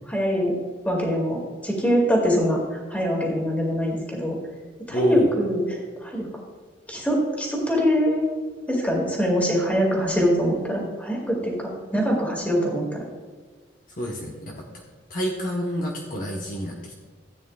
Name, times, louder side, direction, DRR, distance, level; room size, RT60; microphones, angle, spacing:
voice 1, 0.1-0.5 0.8-4.4 4.9-6.3 6.9-8.3 8.7-13.0, equal, 10° left, -2 dB, 2.2 m, -23 dB
voice 2, 4.9-5.3 14.0-14.6 15.1-16.9, equal, 45° left, -1 dB, 1.1 m, -28 dB
14.5 x 9.1 x 2.4 m, 1.5 s
head